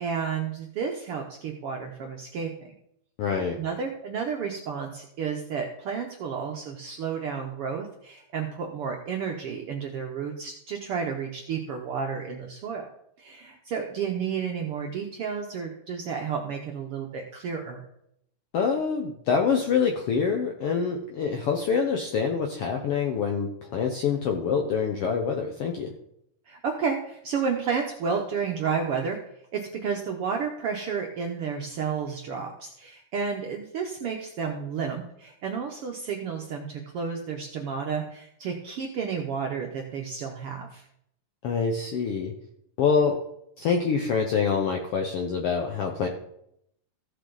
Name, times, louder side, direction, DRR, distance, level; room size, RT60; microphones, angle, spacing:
voice 1, 0.0-2.5 3.6-12.8 13.2-17.8 26.5-29.2 29.5-40.8, right 6 dB, 70° right, 2 dB, 1.4 m, -31 dB
voice 2, 3.2-3.6 18.5-25.9 41.4-42.3 42.8-43.2 43.6-46.1, left 6 dB, 75° left, 3 dB, 1.3 m, -26 dB
15.0 x 6.7 x 3.9 m, 0.75 s
omnidirectional pair, 3.7 m